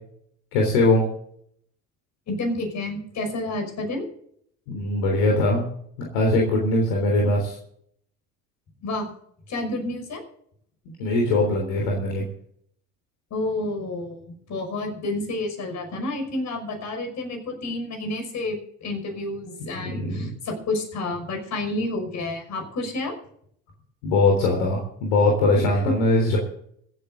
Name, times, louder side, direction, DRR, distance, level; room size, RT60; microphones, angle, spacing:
voice 1, 0.5-1.1 4.7-5.6 6.1-7.6 11.0-12.2 19.8-20.3 24.0-26.4, left 2 dB, 65° left, 1 dB, 3.6 m, -21 dB
voice 2, 2.3-4.1 8.8-9.1 9.5-10.2 13.3-23.1 25.5-25.6, left 2 dB, 45° left, 4 dB, 5.9 m, -30 dB
25.5 x 8.7 x 3.9 m, 0.66 s
figure-of-eight pair, 60°, 39 cm